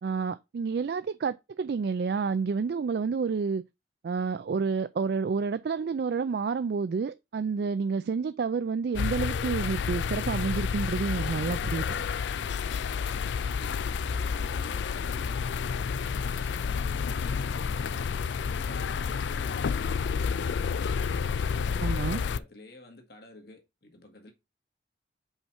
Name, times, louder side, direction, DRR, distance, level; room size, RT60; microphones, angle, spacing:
voice 1, 0.0-3.6 4.0-11.9 21.8-22.2, right 5 dB, 60° right, 0.3 m, -29 dB
sound 1, 8.9-22.4, left 6 dB, 75° left, 0.4 m, -30 dB
voice 2, 13.1-15.9 16.2-18.1 18.4-20.1 21.2-24.3, left 1 dB, 55° left, 1.8 m, -51 dB
5.6 x 4.4 x 5.6 m
head